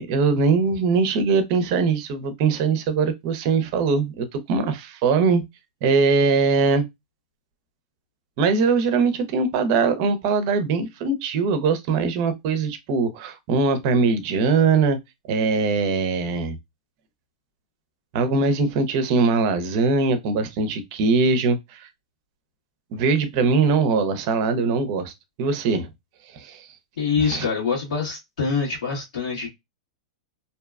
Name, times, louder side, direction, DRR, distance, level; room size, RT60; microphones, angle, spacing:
voice 1, 0.0-5.4 5.8-6.8 8.4-15.0 15.3-16.6 18.1-21.9 22.9-25.1 25.4-25.9 26.3-26.7 27.2-27.5, right 4 dB, 50° right, 0.6 m, -21 dB
voice 2, 27.0-29.5, left 5 dB, 80° left, 1.2 m, -25 dB
2.6 x 2.3 x 2.3 m
hypercardioid pair, 120°, 3 cm